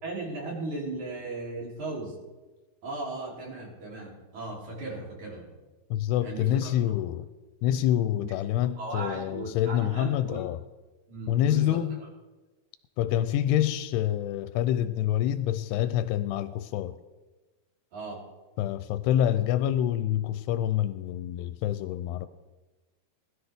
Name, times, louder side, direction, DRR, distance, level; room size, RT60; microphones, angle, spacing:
voice 1, 0.0-2.2 2.8-5.6 6.2-6.7 8.5-10.4 11.1-11.8 17.9-18.2, right 2 dB, 50° right, 4.6 m, -37 dB
voice 2, 5.9-7.3 7.6-10.6 11.3-12.0 13.0-17.0 18.6-22.3, left 11 dB, 85° left, 2.6 m, -27 dB
20.5 x 12.5 x 3.6 m
omnidirectional pair, 4.7 m